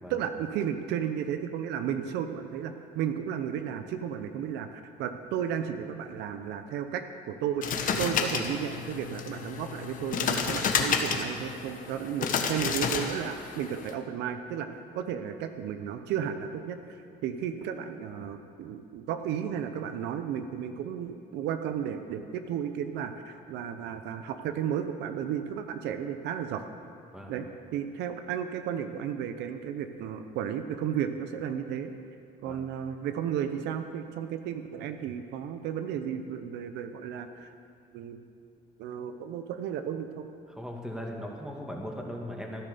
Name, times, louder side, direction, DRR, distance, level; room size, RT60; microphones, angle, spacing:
voice 1, 0.1-17.0 17.2-26.6 27.3-27.5 27.7-31.9 32.4-37.5 37.9-38.2 38.8-40.3, right 9 dB, 85° right, 8 dB, 0.9 m, -33 dB
sound 1, 7.6-13.9, left 6 dB, 50° left, 1.4 m, -30 dB
voice 2, 40.5-42.6, equal, 5° right, 0 dB, 2.3 m, -38 dB
14.5 x 10.0 x 6.9 m, 2.4 s
cardioid pair, 110°, 17 cm